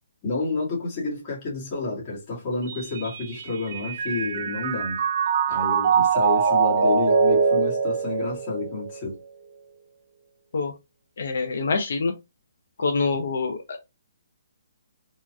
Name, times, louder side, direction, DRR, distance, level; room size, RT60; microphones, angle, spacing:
voice 1, 0.2-5.0 5.5-9.2, left 3 dB, 25° left, 1.8 m, -30 dB
Mallet percussion, 2.7-9.1, right 5 dB, 45° right, 0.5 m, -23 dB
voice 2, 11.2-12.1 12.8-13.8, left 4 dB, 60° left, 0.7 m, -25 dB
4.3 x 2.9 x 2.2 m
hypercardioid pair, 170°, 0 cm